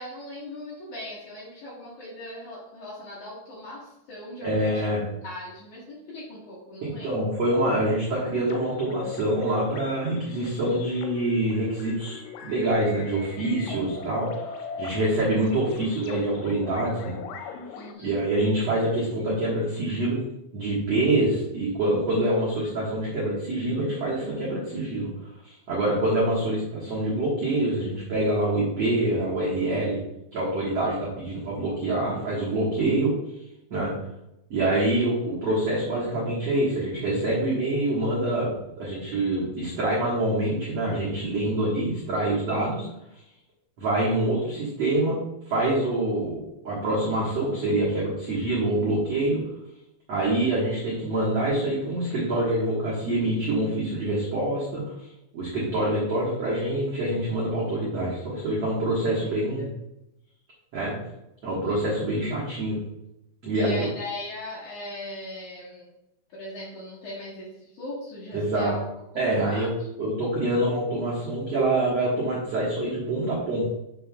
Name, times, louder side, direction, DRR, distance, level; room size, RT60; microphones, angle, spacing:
voice 1, 0.0-4.8 5.2-7.2 17.8-18.2 59.6-59.7 63.5-65.9 66.3-68.8 69.1-69.7, left 1 dB, 60° left, -7 dB, 2.2 m, -39 dB
voice 2, 4.4-5.0 6.8-17.2 18.0-20.2 20.5-25.1 25.4-30.0 30.3-33.1 33.7-33.9 34.5-42.9 43.8-45.2 45.5-49.4 50.1-59.7 60.7-60.9 61.4-62.8 63.4-63.9 68.3-68.7 69.1-69.7 70.0-73.7, right 1 dB, 75° right, -7 dB, 1.5 m, -26 dB
sound 1, 8.2-17.9, left 6 dB, 85° left, 3.1 m, -40 dB
7.5 x 6.1 x 2.3 m, 0.86 s
omnidirectional pair, 5.3 m